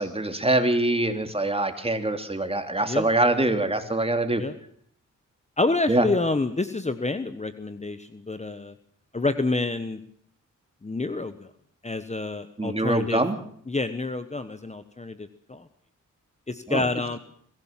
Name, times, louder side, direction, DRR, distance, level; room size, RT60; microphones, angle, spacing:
voice 1, 0.0-4.4 5.9-6.1 12.6-13.4 16.7-16.8, right 2 dB, 20° right, 7 dB, 2.9 m, -24 dB
voice 2, 5.6-8.7 9.1-10.0 10.8-11.5 11.8-13.2 13.7-15.7 16.5-17.2, left 3 dB, 20° left, 10 dB, 1.2 m, -28 dB
23.0 x 15.5 x 7.4 m, 0.63 s
cardioid pair, 70°, 31 cm